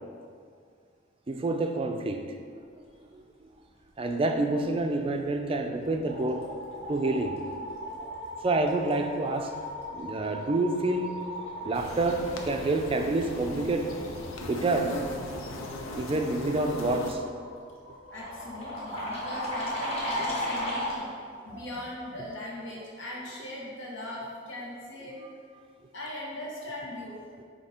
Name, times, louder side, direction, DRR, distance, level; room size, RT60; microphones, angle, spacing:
voice 1, 1.3-2.2 4.0-7.4 8.0-8.1 8.4-9.5 9.9-11.2 11.6-13.9 14.4-15.0 15.9-17.5 21.0-21.1 21.5-21.7, right 2 dB, 25° right, 5 dB, 0.4 m, -28 dB
sound 1, 5.2-5.5 5.8-21.0, equal, 30° left, 1.3 m, -37 dB
sound 2, 11.7-17.1, left 1 dB, 90° left, 0.7 m, -39 dB
voice 2, 18.1-21.1 21.4-25.2 25.9-27.2, left 1 dB, 70° left, -5 dB, 1.4 m, -39 dB
7.8 x 2.8 x 4.3 m, 2.1 s
head